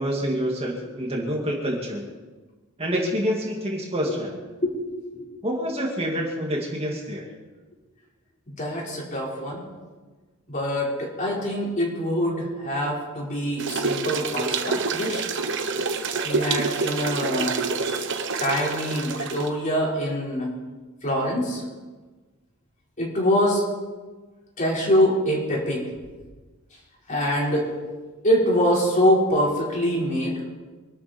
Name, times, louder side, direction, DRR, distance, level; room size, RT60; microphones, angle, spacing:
voice 1, 0.0-2.1 2.8-4.4 5.4-7.3, equal, 25° right, -1 dB, 2.4 m, -27 dB
voice 2, 8.5-9.6 10.5-15.3 16.2-17.9 18.4-20.5 21.0-21.6 23.0-23.6 24.6-25.9 27.1-27.7 28.2-30.4, equal, 35° left, -3 dB, 5.1 m, -24 dB
sound 1, 13.6-19.5, right 4 dB, 55° right, 1.2 m, -27 dB
25.0 x 12.5 x 4.5 m, 1.3 s
head